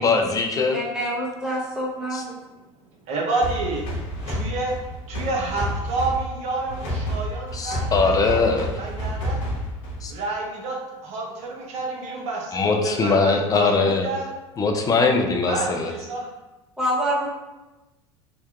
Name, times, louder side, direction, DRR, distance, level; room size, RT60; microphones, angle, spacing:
voice 1, 0.0-0.8 2.1-2.2 7.5-8.7 10.0-10.1 12.5-14.1 14.6-15.9, left 4 dB, 25° left, 3 dB, 0.4 m, -21 dB
voice 2, 0.7-2.3 16.8-17.3, equal, 5° right, -5 dB, 0.8 m, -26 dB
voice 3, 3.1-3.8 4.3-4.7 5.1-9.4 10.1-10.8 11.0-14.3 15.5-16.3, right 3 dB, 50° right, -1 dB, 0.6 m, -29 dB
sound 1, 3.4-10.2, equal, 60° left, 0.8 m, -30 dB
2.8 x 2.2 x 2.3 m, 1.1 s
hypercardioid pair, 75°, 15 cm